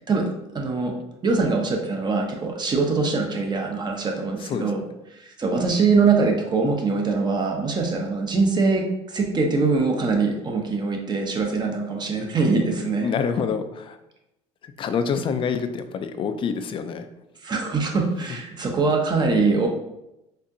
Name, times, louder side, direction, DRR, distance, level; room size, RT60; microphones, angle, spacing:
voice 1, 0.1-0.9 1.2-4.9 5.1-13.1 17.4-19.7, right 4 dB, 30° right, 2 dB, 0.7 m, -23 dB
voice 2, 13.0-14.0 14.8-17.1, left 6 dB, 35° left, 9 dB, 0.4 m, -26 dB
4.2 x 2.5 x 2.6 m, 0.90 s
supercardioid pair, 90°, 15 cm